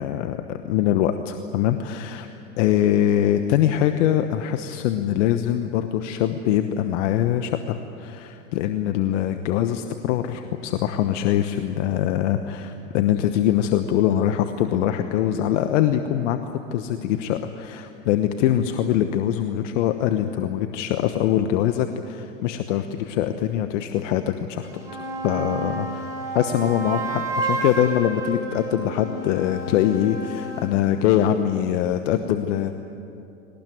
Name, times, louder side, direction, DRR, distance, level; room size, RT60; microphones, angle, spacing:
voice 1, 0.0-2.3 2.6-24.7 25.2-26.1 26.3-32.7, left 11 dB, 65° left, 8 dB, 1.2 m, -23 dB
sound 1, 24.6-30.8, right 2 dB, 10° right, 6.1 m, -30 dB
21.5 x 19.0 x 9.4 m, 2.7 s
hypercardioid pair, 110°, 39 cm